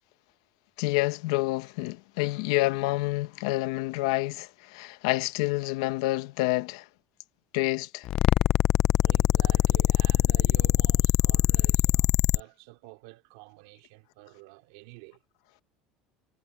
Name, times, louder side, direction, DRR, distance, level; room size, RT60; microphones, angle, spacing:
voice 1, 0.8-6.9 7.5-8.1, left 20 dB, 85° left, 1.0 m, -28 dB
sound 1, 8.1-12.4, left 14 dB, 35° left, 0.4 m, -22 dB
voice 2, 9.0-15.2, right 23 dB, 80° right, 3.1 m, -49 dB
cardioid pair, 175°, 3 cm